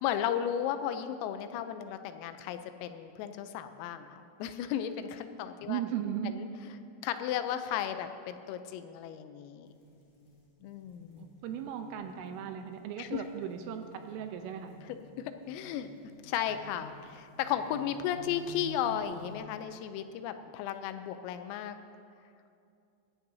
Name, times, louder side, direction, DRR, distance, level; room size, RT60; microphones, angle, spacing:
voice 1, 0.0-5.8 6.4-9.7 10.6-11.3 13.0-13.2 14.8-15.9 16.2-21.8, left 10 dB, 85° left, 9 dB, 3.2 m, -35 dB
voice 2, 5.7-6.3 11.2-14.7, right 9 dB, 85° right, 6 dB, 3.1 m, -37 dB
sound 1, 9.6-19.4, right 1 dB, 40° left, 3.4 m, -53 dB
23.0 x 12.0 x 2.7 m, 2.5 s
omnidirectional pair, 6.0 m